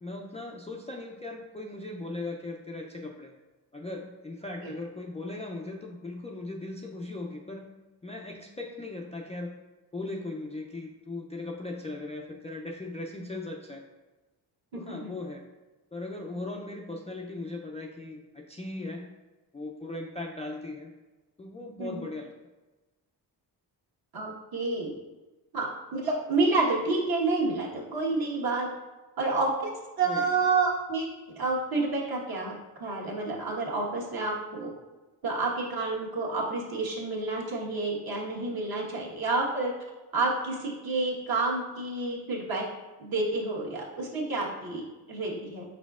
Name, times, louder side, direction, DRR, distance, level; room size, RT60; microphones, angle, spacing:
voice 1, 0.0-3.3 3.7-7.7 8.0-9.5 9.9-13.8 14.7-15.4 15.9-19.1 19.5-20.9 21.4-22.3 30.0-30.5, left 2 dB, 15° left, -1 dB, 0.4 m, -38 dB
voice 2, 14.7-15.1 21.8-22.0 24.1-24.9 25.5-28.7 29.2-29.7 30.0-31.1 31.4-32.5 32.8-34.7 35.2-39.7 40.1-42.7 43.0-45.6, right 3 dB, 55° right, -4 dB, 1.3 m, -29 dB
5.2 x 4.1 x 2.4 m, 1.2 s
cardioid pair, 70°, 43 cm